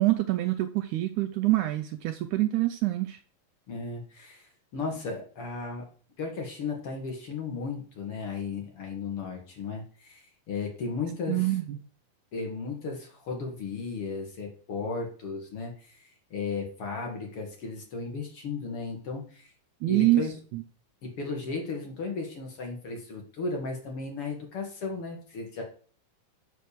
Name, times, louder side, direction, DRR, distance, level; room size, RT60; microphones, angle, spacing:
voice 1, 0.0-3.2 11.3-11.8 19.8-20.3 20.5-20.6, right 16 dB, 75° right, 8 dB, 1.9 m, -25 dB
voice 2, 3.7-5.9 6.2-11.6 12.3-19.5 19.9-20.3 21.0-25.6, left 4 dB, 45° left, 1 dB, 2.7 m, -35 dB
7.6 x 6.3 x 6.9 m, 0.43 s
omnidirectional pair, 3.9 m